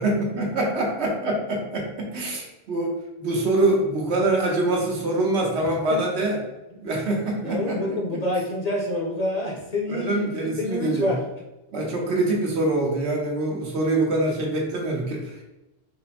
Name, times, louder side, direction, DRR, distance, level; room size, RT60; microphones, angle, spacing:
voice 1, 0.0-6.4 6.8-8.0 9.9-11.2 11.7-15.4, right 2 dB, 80° right, -1 dB, 1.2 m, -25 dB
voice 2, 5.6-6.0 7.4-11.2, left 1 dB, 40° left, -2 dB, 0.7 m, -28 dB
4.0 x 2.1 x 4.1 m, 0.99 s
omnidirectional pair, 1.1 m